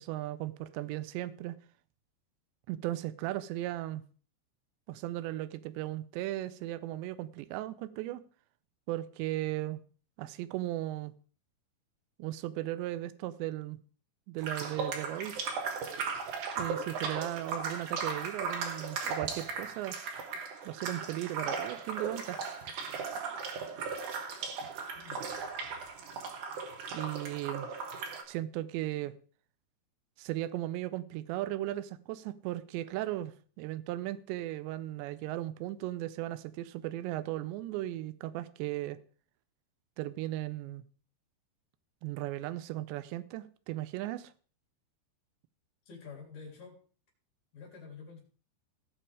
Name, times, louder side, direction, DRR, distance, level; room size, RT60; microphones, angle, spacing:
voice 1, 0.0-1.6 2.7-4.0 4.9-8.2 8.9-9.8 10.2-11.1 12.2-13.8 14.3-15.4 16.6-20.0 20.7-22.4 26.9-27.7 28.3-29.2 30.2-39.0 40.0-40.8 42.0-44.3, right 15 dB, 85° right, 15 dB, 2.9 m, -36 dB
sound 1, 14.4-28.2, right 5 dB, 60° right, 2.3 m, -37 dB
voice 2, 45.9-46.8 47.5-48.2, left 5 dB, 45° left, -1 dB, 4.5 m, -48 dB
18.0 x 6.1 x 4.8 m, 0.41 s
omnidirectional pair, 5.0 m